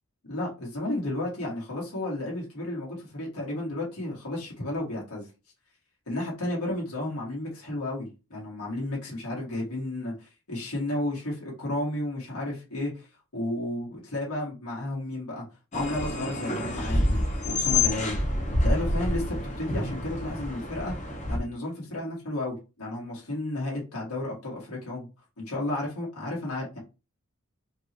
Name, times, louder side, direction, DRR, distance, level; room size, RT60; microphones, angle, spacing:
voice 1, 0.3-5.3 6.1-13.1 13.3-15.4 15.7-18.2 18.6-20.9 21.3-25.1 25.4-26.8, left 1 dB, 80° left, 2.0 m, -32 dB
sound 1, 15.7-21.4, left 2 dB, 35° left, 0.8 m, -27 dB
4.5 x 3.1 x 2.9 m
head